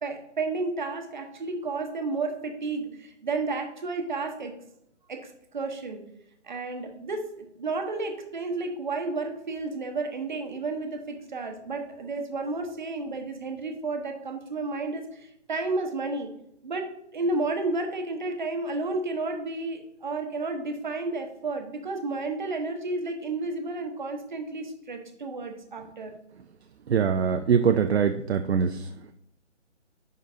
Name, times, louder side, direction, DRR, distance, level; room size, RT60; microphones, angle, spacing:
voice 1, 0.0-4.5 5.1-6.0 6.4-16.3 16.6-26.1, right 3 dB, 40° right, 4 dB, 0.9 m, -32 dB
voice 2, 26.9-28.8, right 7 dB, 60° right, 8 dB, 0.5 m, -23 dB
10.5 x 3.9 x 2.6 m, 0.78 s
hypercardioid pair, 165°, 36 cm